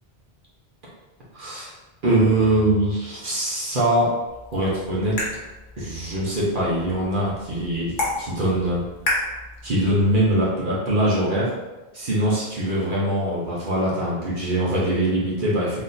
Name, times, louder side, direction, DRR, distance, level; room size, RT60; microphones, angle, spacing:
voice 1, 1.3-1.7 2.0-4.1 4.5-5.2 5.8-8.8 9.6-11.5 11.9-15.8, right 1 dB, 55° right, -6 dB, 1.0 m, -22 dB
sound 1, 4.3-10.3, left 1 dB, 50° left, 1.2 m, -32 dB
4.1 x 3.2 x 2.6 m, 1.1 s
omnidirectional pair, 1.1 m